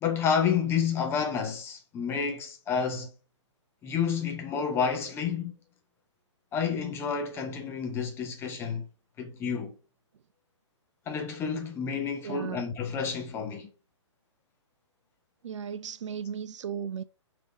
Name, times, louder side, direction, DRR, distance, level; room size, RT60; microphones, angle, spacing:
voice 1, 0.0-3.1 3.8-5.5 6.5-8.9 9.2-9.7 11.1-13.7, left 6 dB, 15° left, 0.6 m, -30 dB
voice 2, 12.2-12.6 15.4-17.0, right 7 dB, 70° right, 0.4 m, -35 dB
3.4 x 2.8 x 3.9 m
hypercardioid pair, 135°, 16 cm